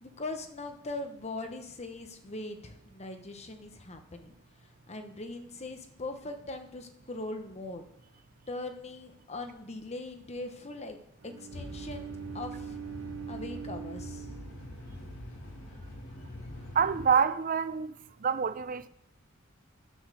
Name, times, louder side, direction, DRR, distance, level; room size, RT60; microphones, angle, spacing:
voice 1, 0.0-4.3 4.6-7.8 8.5-11.0 11.2-12.8 13.3-14.3, left 2 dB, 35° left, 1.0 m, -41 dB
Bowed string instrument, 11.2-15.3, right 8 dB, 85° right, 0.7 m, -43 dB
sound 1, 11.5-17.1, left 1 dB, 90° left, 2.5 m, -44 dB
voice 2, 16.7-17.9 18.2-18.9, right 6 dB, 40° right, 0.5 m, -26 dB
9.9 x 7.2 x 6.4 m
head